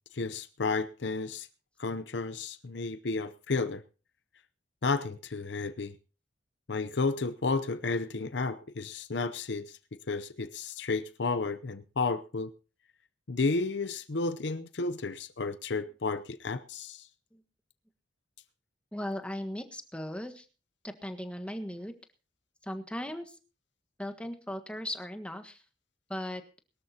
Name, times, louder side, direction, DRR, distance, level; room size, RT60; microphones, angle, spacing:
voice 1, 0.1-1.5 1.8-3.8 4.8-6.0 6.7-9.8 10.1-12.5 13.3-17.1, left 3 dB, 60° left, 0.7 m, -32 dB
voice 2, 18.9-20.5 20.8-21.9 22.6-23.4 24.0-25.6 26.1-26.4, left 1 dB, 5° left, 1.5 m, -38 dB
22.0 x 13.0 x 2.9 m
head